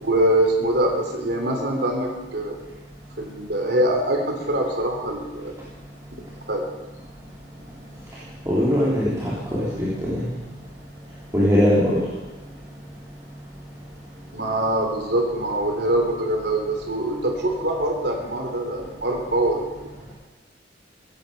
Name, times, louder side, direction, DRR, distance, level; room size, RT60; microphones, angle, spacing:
voice 1, 0.0-2.6 3.2-5.5 6.5-6.6 14.3-20.1, right 1 dB, 60° right, 1 dB, 3.2 m, -24 dB
voice 2, 8.5-10.3 11.3-12.0, equal, 15° right, -9 dB, 3.7 m, -21 dB
17.0 x 15.5 x 5.3 m, 1.2 s
head